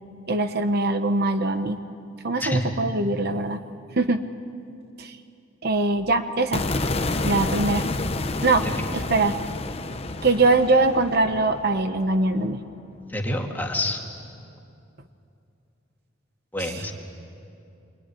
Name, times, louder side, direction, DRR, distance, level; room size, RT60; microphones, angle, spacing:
voice 1, 0.3-1.8 2.2-3.6 3.9-4.2 5.0-5.2 5.6-6.6 7.2-7.9 8.4-8.7 8.9-9.4 10.2-12.6 16.6-16.9, right 2 dB, 55° right, 9 dB, 0.9 m, -22 dB
voice 2, 2.4-2.8 13.1-14.0 16.5-16.9, left 1 dB, 10° left, 0 dB, 2.3 m, -27 dB
sound 1, 6.5-12.8, left 2 dB, 30° left, 0.9 m, -29 dB
23.5 x 23.0 x 10.0 m, 2.6 s
head